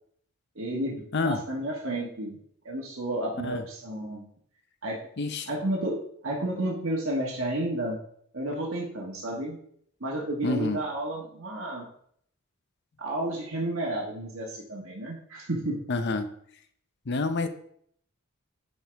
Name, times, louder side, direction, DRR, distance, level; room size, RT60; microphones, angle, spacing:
voice 1, 0.5-2.4 2.6-4.3 4.8-5.0 5.5-8.0 8.3-9.6 10.0-11.9 13.0-15.8, right 1 dB, 65° right, -3 dB, 1.4 m, -31 dB
voice 2, 5.2-5.5 10.4-10.8 15.9-16.3 17.1-17.5, left 3 dB, 50° left, 9 dB, 0.6 m, -28 dB
9.8 x 4.6 x 3.4 m, 0.65 s
head